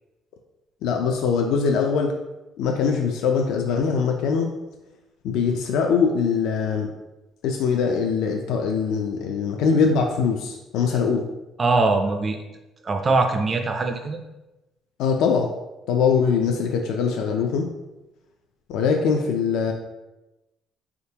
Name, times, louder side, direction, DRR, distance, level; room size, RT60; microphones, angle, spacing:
voice 1, 0.8-2.1 2.6-4.5 5.2-6.9 7.4-11.3 15.0-15.5 15.9-17.7 18.7-19.7, left 5 dB, 80° left, 2 dB, 0.4 m, -22 dB
voice 2, 11.6-12.4 12.8-14.2, right 3 dB, 25° right, 4 dB, 0.3 m, -22 dB
4.2 x 3.6 x 2.8 m, 1.0 s
cardioid pair, 150°, 0 cm